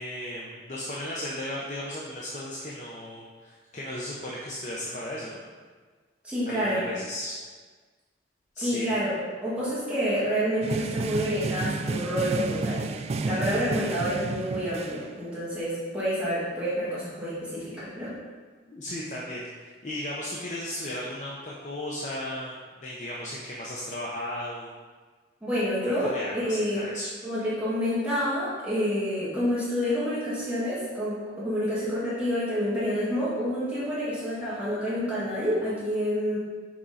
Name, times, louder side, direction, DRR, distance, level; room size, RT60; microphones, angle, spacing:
voice 1, 0.0-5.4 6.5-7.4 8.5-8.9 18.7-22.5 22.8-24.7 26.1-27.1, left 1 dB, 40° left, -4 dB, 0.7 m, -35 dB
voice 2, 6.2-6.8 8.6-9.1 9.4-12.9 13.3-18.1 25.4-26.8 27.2-36.4, equal, 5° right, -10 dB, 1.9 m, -28 dB
sound 1, 10.6-15.0, right 3 dB, 35° right, 0.3 m, -31 dB
6.3 x 4.6 x 4.0 m, 1.5 s
head